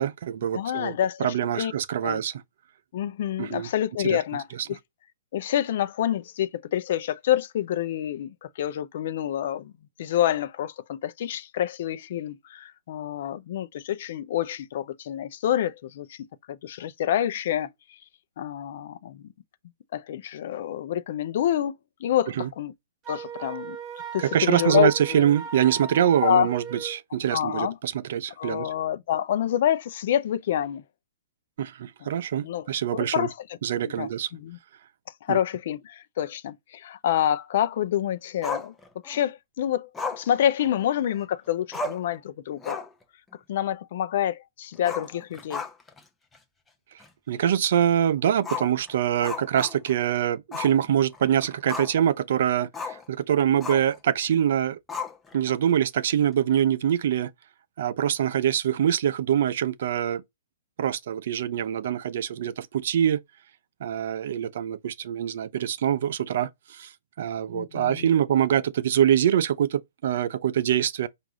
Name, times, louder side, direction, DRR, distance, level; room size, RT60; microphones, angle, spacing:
voice 1, 0.0-0.9 1.2-2.4 3.4-3.7 4.0-4.2 4.6-4.7 22.4-22.5 24.3-28.7 31.6-33.3 33.6-34.3 35.3-35.4 47.3-54.8 55.3-57.3 57.8-60.2 60.8-63.2 63.8-66.9 67.2-71.1, right 10 dB, 60° right, 0.5 m, -24 dB
voice 2, 0.5-1.7 2.0-2.2 2.9-4.8 5.3-9.7 10.0-16.2 16.5-17.7 18.4-19.3 19.9-21.7 22.0-22.7 23.1-23.8 24.1-25.3 26.2-26.5 27.3-27.7 28.4-30.8 32.4-32.7 32.9-33.3 33.8-34.6 35.2-38.7 39.0-39.9 40.2-42.9 43.5-45.6 67.5-68.1, left 11 dB, 55° left, 0.6 m, -27 dB
Wind instrument woodwind instrument, 23.0-27.0, right 6 dB, 25° right, 1.0 m, -38 dB
Growling, 38.4-39.2 39.9-41.2 41.5-41.6 41.7-42.1 42.5-43.0 43.3-43.4 44.8-46.0 46.3-46.4 47.0-47.1 48.4-50.0 50.5-50.8 51.1-52.1 52.7-53.0 53.6-54.0 54.9-55.5, left 4 dB, 10° left, 0.7 m, -35 dB
4.7 x 2.5 x 3.8 m
hypercardioid pair, 145°, 0 cm